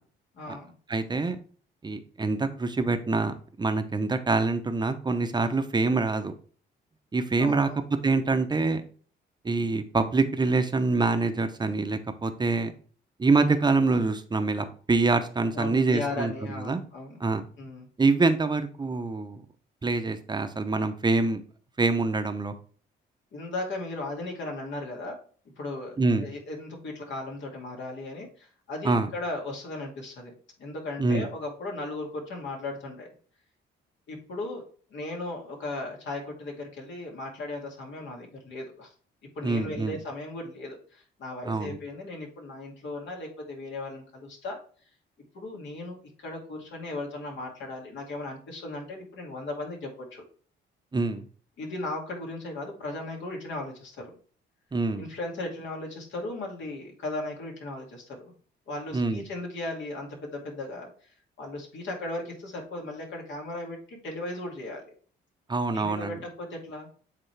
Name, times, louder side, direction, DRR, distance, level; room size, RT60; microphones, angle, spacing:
voice 1, 0.3-0.7 7.4-7.8 15.5-17.2 17.6-17.9 23.3-25.2 25.6-30.3 30.6-33.1 34.1-34.6 34.9-38.9 39.3-44.6 45.3-50.2 51.6-54.1 55.0-58.3 58.7-60.9 61.4-64.8 65.7-66.9, left 2 dB, 70° left, -1 dB, 2.3 m, -36 dB
voice 2, 0.9-1.4 1.8-6.3 7.1-7.7 8.0-8.8 9.4-12.7 13.2-16.8 17.2-17.4 18.0-19.4 19.8-21.4 21.8-22.5 26.0-26.3 28.8-29.1 31.0-31.3 39.4-40.0 41.4-41.8 50.9-51.3 54.7-55.1 58.9-59.2 65.5-66.2, right 3 dB, 20° right, 8 dB, 0.8 m, -25 dB
7.9 x 3.7 x 3.3 m, 0.43 s
cardioid pair, 90°, 20 cm